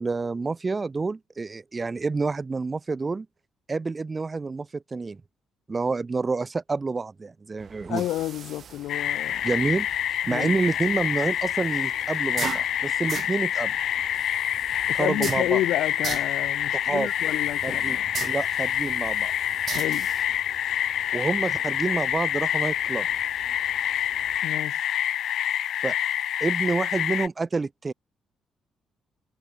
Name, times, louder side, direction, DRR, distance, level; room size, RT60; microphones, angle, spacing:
voice 1, 0.0-3.3 3.7-5.2 5.7-8.0 9.4-9.9 10.3-13.7 14.9-15.6 16.8-17.1 17.6-18.0 18.3-19.3 21.1-23.1 25.8-26.0 26.4-27.9, right 4 dB, 30° right, 2.9 m, -28 dB
sound 1, 7.6-24.4, right 8 dB, 55° right, 3.3 m, -41 dB
voice 2, 7.9-9.5 10.3-10.5 14.9-18.1 19.7-20.1 24.4-24.9, left 14 dB, 85° left, 5.0 m, -30 dB
sound 2, 8.9-27.3, left 11 dB, 70° left, 0.9 m, -27 dB
cardioid pair, 90°, 0 cm